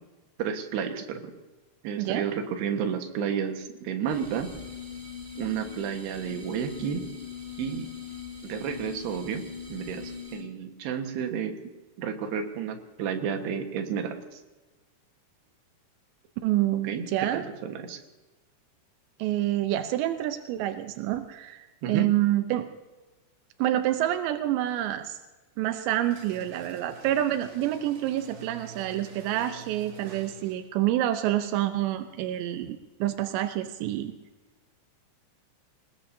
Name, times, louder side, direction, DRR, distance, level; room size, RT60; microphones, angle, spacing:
voice 1, 0.4-1.3 1.8-4.5 5.4-7.1 7.6-7.9 8.4-11.6 12.0-14.4 16.7-17.1 17.3-18.0 21.8-22.1, right 7 dB, 75° right, 5 dB, 3.5 m, -31 dB
sound 1, 4.1-10.6, left 6 dB, 10° right, 2.1 m, -41 dB
voice 2, 16.4-17.4 19.2-22.7 23.6-25.2 25.6-34.1, right 13 dB, 90° right, 8 dB, 3.1 m, -27 dB
sound 2, 26.0-30.8, right 5 dB, 55° right, 3.9 m, -47 dB
25.5 x 20.0 x 2.8 m, 1.2 s
omnidirectional pair, 4.9 m